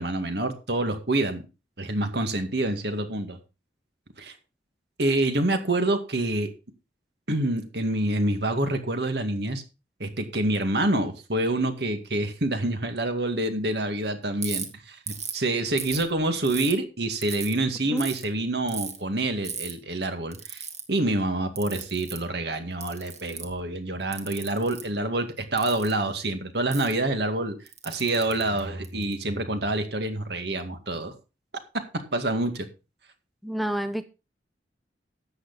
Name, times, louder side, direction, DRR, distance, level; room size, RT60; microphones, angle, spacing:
voice 1, 0.0-1.4 1.8-3.4 4.2-4.3 5.0-6.5 7.3-9.6 10.0-27.6 27.8-31.1 31.9-32.7, right 2 dB, 65° right, 2.1 m, -27 dB
Ratchet pawl, 14.4-14.6 15.1-15.4 15.8-16.7 17.2-17.5 18.0-18.2 18.7-19.0 19.4-19.7 20.3-20.8 21.6-22.2 22.8-23.6 24.1-24.8 25.6-25.9 26.7-26.9 27.7-29.1, right 7 dB, 40° right, 2.2 m, -35 dB
voice 2, 33.4-34.0, right 1 dB, ahead, 0.6 m, -28 dB
13.0 x 8.8 x 4.1 m
head